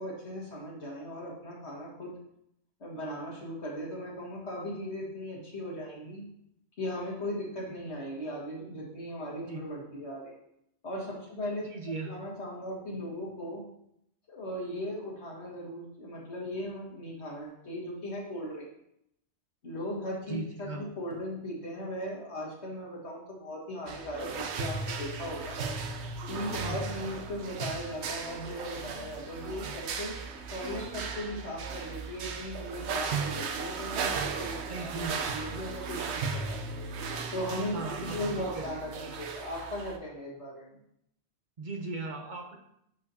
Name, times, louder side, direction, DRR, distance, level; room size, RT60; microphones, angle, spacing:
voice 1, 0.0-2.1 2.8-6.2 6.8-10.3 10.8-11.7 12.1-13.6 14.3-18.7 19.6-25.6 26.3-30.1 30.5-34.8 35.1-36.6 37.3-40.8, equal, 75° left, -3 dB, 2.1 m, -38 dB
voice 2, 11.6-12.1 20.3-20.8 26.6-26.8 34.7-35.2 37.7-38.2 38.5-38.7 41.6-42.6, right 3 dB, 45° right, 2 dB, 0.9 m, -37 dB
sound 1, 23.9-40.0, right 4 dB, 75° right, 1.0 m, -36 dB
10.5 x 4.5 x 2.7 m, 0.76 s
omnidirectional pair, 1.1 m